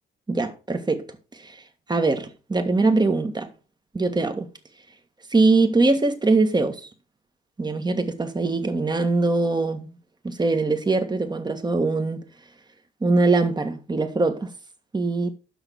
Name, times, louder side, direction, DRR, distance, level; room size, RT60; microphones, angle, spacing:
voice 1, 0.3-1.0 1.3-1.6 1.9-3.5 3.9-4.5 5.3-6.9 7.6-9.9 10.2-12.2 13.0-14.5 14.9-15.3, right 3 dB, 20° right, 1.7 m, -22 dB
7.8 x 6.1 x 5.9 m
cardioid pair, 90°, 20 cm